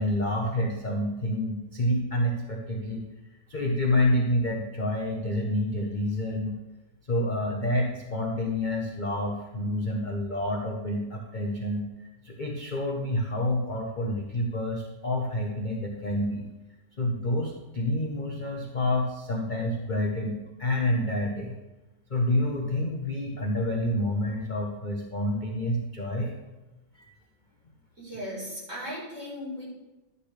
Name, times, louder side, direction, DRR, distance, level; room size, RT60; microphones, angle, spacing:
voice 1, 0.0-3.0 3.5-6.5 7.1-16.4 17.0-21.6 22.1-26.4 26.9-27.1, left 1 dB, 35° left, 0 dB, 0.9 m, -28 dB
voice 2, 28.0-29.6, equal, 40° right, -6 dB, 4.8 m, -37 dB
12.0 x 9.8 x 3.3 m, 1.0 s
omnidirectional pair, 1.9 m